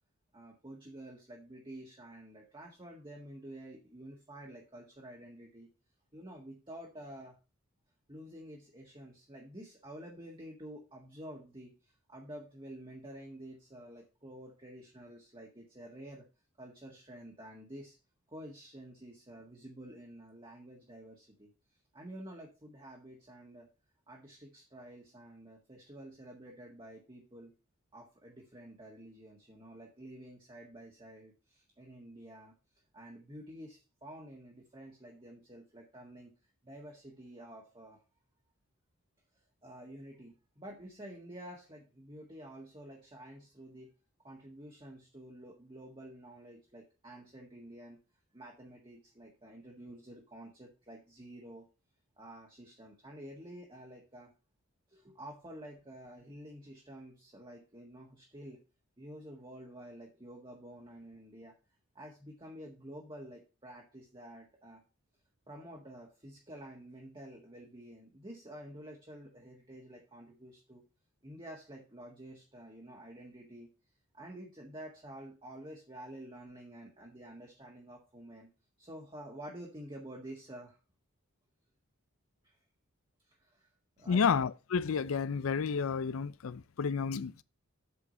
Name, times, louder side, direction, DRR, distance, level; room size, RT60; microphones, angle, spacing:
voice 1, 0.3-5.7 6.1-7.4 8.1-16.2 16.6-18.0 18.3-21.5 21.9-23.7 24.1-27.5 27.9-32.5 32.9-36.3 36.6-38.0 39.6-43.9 44.2-48.0 48.3-51.7 52.2-54.3 54.9-58.6 59.0-61.5 61.9-64.8 65.5-70.8 71.2-73.7 74.1-78.5 78.8-80.8 82.4-82.5 83.4-83.7 84.0-84.2, right 1 dB, 20° right, 1.6 m, -49 dB
voice 2, 84.1-87.4, left 6 dB, 65° left, 0.4 m, -31 dB
8.1 x 4.9 x 5.3 m
head